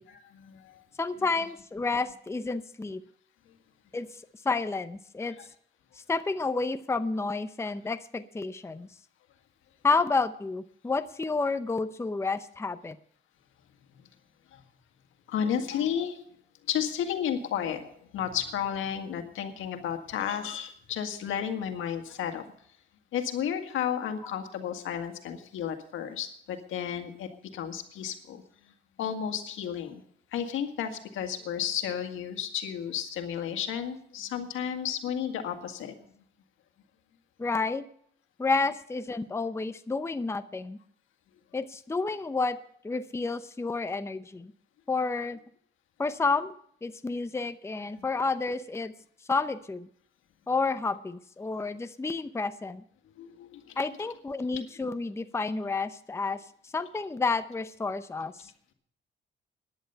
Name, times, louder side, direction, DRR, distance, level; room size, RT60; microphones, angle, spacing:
voice 1, 0.0-0.8 5.3-5.5 14.5-14.6 15.3-16.2 16.7-22.4 23.1-28.4 29.0-30.0 30.3-35.9 48.0-48.1 53.2-53.8 54.5-54.6, left 9 dB, 80° left, 6 dB, 1.8 m, -33 dB
voice 2, 1.0-3.0 3.9-5.4 6.0-8.9 9.8-13.0 37.4-37.8 38.4-40.8 41.5-42.6 42.8-44.5 44.9-45.4 46.0-46.5 46.8-48.9 49.3-49.9 50.5-52.8 53.8-58.5, left 3 dB, 15° left, 11 dB, 0.7 m, -30 dB
15.0 x 10.5 x 5.6 m, 0.64 s
cardioid pair, 90°, 20 cm